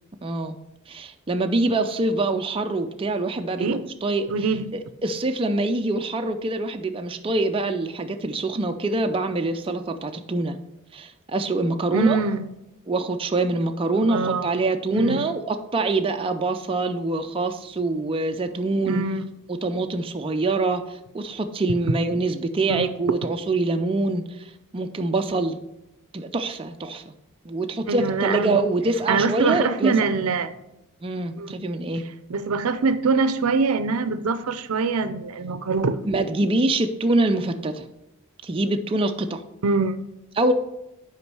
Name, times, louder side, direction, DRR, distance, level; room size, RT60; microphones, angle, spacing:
voice 1, 0.2-0.6 0.9-4.3 5.0-10.6 10.9-12.2 12.9-19.0 19.5-25.6 26.1-27.1 27.5-29.9 31.0-32.0 36.0-37.8 38.4-39.4 40.4-40.5, right 2 dB, 25° right, 5 dB, 0.4 m, -25 dB
voice 2, 4.3-4.7 11.9-12.5 14.0-14.5 14.9-15.3 18.9-19.3 22.7-22.9 27.9-28.6 29.1-30.6 31.4-31.5 32.3-36.0 39.6-40.0, right 4 dB, 75° right, 12 dB, 0.5 m, -24 dB
8.3 x 5.1 x 4.7 m, 0.94 s
head